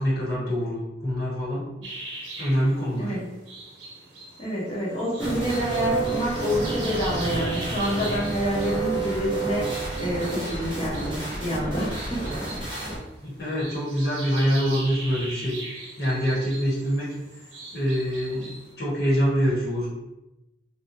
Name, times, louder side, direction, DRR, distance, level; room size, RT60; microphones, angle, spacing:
voice 1, 0.0-1.9 2.4-3.1 13.2-15.5 16.0-17.1 17.7-19.9, equal, 55° left, -7 dB, 1.1 m, -25 dB
sound 1, 1.8-18.7, right 2 dB, 75° right, 0.8 m, -41 dB
voice 2, 4.4-9.7 10.0-12.3, equal, 30° left, -6 dB, 0.8 m, -27 dB
sound 2, 5.2-13.0, right 3 dB, 25° right, 0.7 m, -30 dB
2.8 x 2.3 x 2.5 m, 0.95 s
head